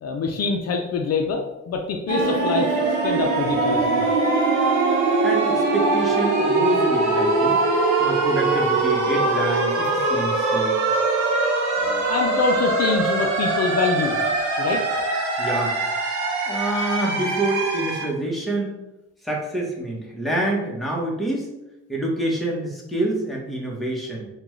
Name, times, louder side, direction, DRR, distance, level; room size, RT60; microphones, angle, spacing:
voice 1, 0.0-4.1 11.8-14.2 14.6-14.8, left 4 dB, 55° left, 3 dB, 0.5 m, -25 dB
sound 1, 2.1-18.1, right 3 dB, 70° right, 0.9 m, -22 dB
voice 2, 5.2-7.6 8.0-10.7 15.4-15.8 16.4-18.7 19.2-21.5 21.9-24.3, right 2 dB, ahead, -3 dB, 0.9 m, -26 dB
3.6 x 2.3 x 3.1 m, 0.93 s
cardioid pair, 90°, 30 cm